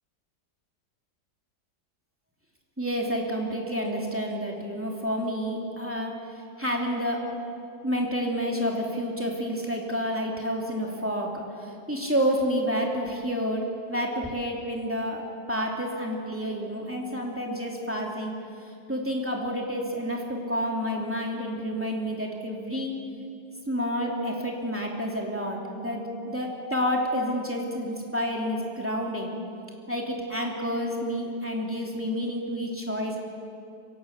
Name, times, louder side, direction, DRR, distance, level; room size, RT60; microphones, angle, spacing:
voice 1, 2.8-6.1 6.6-7.3 7.8-13.6 13.9-18.3 18.9-23.0 23.7-29.4 29.9-33.2, equal, 5° right, -1 dB, 2.8 m, -29 dB
24.5 x 17.5 x 7.2 m, 2.5 s
omnidirectional pair, 1.9 m